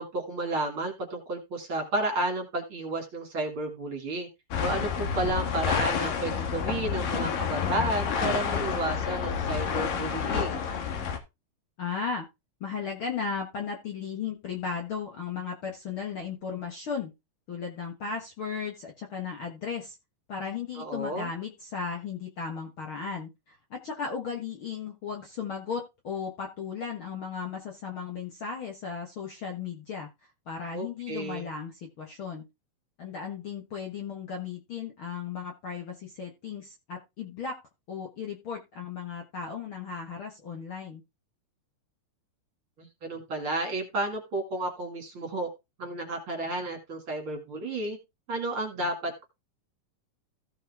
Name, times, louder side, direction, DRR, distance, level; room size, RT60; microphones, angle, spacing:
voice 1, 0.0-4.3 4.6-10.6 20.8-21.3 30.7-31.5 42.8-45.5 45.8-48.0 48.3-49.2, right 2 dB, 40° right, 3 dB, 2.7 m, -32 dB
sound 1, 4.5-11.2, left 7 dB, 80° left, 3.1 m, -29 dB
voice 2, 11.8-12.3 12.6-17.1 17.5-20.0 20.3-30.1 30.5-32.4 33.0-37.6 37.9-41.0, left 6 dB, 50° left, 2 dB, 1.8 m, -36 dB
15.5 x 5.4 x 3.6 m, 0.24 s
omnidirectional pair, 3.8 m